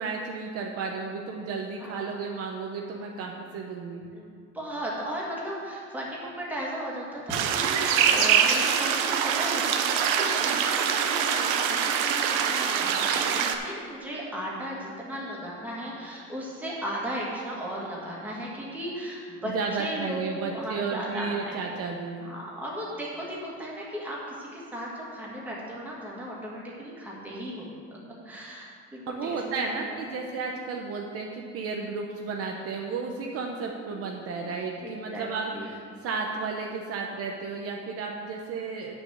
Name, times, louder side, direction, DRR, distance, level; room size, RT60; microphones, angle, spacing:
voice 1, 0.0-4.0 19.4-22.2 29.1-38.9, right 4 dB, 50° right, 1 dB, 0.8 m, -33 dB
voice 2, 4.1-21.6 22.2-28.0 28.2-30.2 33.7-34.5 34.8-35.7, equal, 5° right, -6 dB, 2.1 m, -36 dB
sound 1, 7.3-13.6, right 7 dB, 90° right, 0.9 m, -24 dB
9.2 x 6.3 x 6.4 m, 2.2 s
cardioid pair, 155°, 30 cm